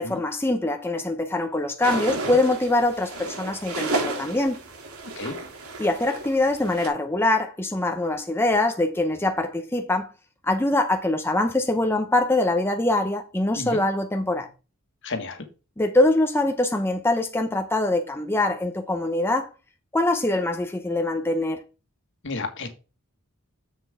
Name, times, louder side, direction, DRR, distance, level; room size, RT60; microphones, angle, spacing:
voice 1, 0.0-4.6 5.8-10.1 10.4-14.5 15.8-19.5 19.9-21.6, left 2 dB, 10° left, 0.7 m, -23 dB
sound 1, 1.8-6.9, right 2 dB, 75° right, 3.5 m, -32 dB
voice 2, 15.0-15.4 22.2-22.7, left 3 dB, 55° left, 1.7 m, -32 dB
7.5 x 7.3 x 3.6 m
head